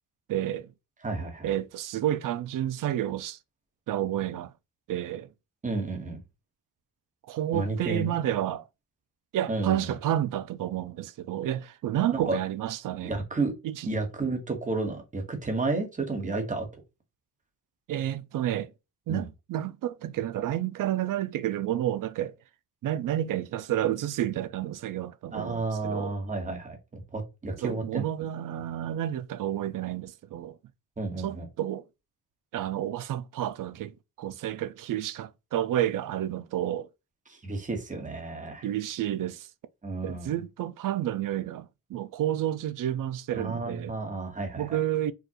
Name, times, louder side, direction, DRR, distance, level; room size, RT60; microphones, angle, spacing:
voice 1, 0.3-0.7 1.4-3.4 3.9-4.5 4.9-5.3 7.3-8.7 9.3-13.2 13.6-13.9 17.9-18.7 19.1-22.3 22.8-26.1 27.6-30.6 31.2-31.8 32.5-36.9 38.6-39.5 40.0-43.9 44.6-45.1, right 12 dB, 60° right, 0.5 m, -30 dB
voice 2, 1.0-1.5 5.6-6.2 7.5-8.1 9.5-9.9 12.1-12.4 13.0-13.5 13.9-16.7 19.1-19.2 25.3-28.1 31.0-31.5 37.3-38.7 39.8-40.3 43.3-44.8, right 3 dB, 20° right, 1.3 m, -31 dB
4.7 x 2.5 x 2.9 m
cardioid pair, 140°, 36 cm